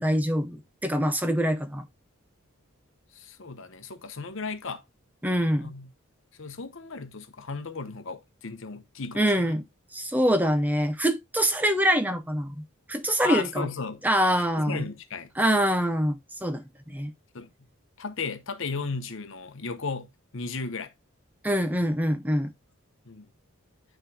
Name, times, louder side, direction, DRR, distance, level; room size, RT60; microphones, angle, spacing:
voice 1, 0.0-1.8 5.2-5.7 9.2-9.6 9.9-13.7 14.0-14.8 15.4-17.1 21.4-22.5, equal, 10° right, 0.6 m, -25 dB
voice 2, 3.1-4.8 5.6-5.9 6.4-9.6 13.2-14.0 14.6-15.3 17.3-17.5 18.0-20.9 23.0-23.3, left 4 dB, 60° left, 0.9 m, -35 dB
9.7 x 3.8 x 3.3 m
head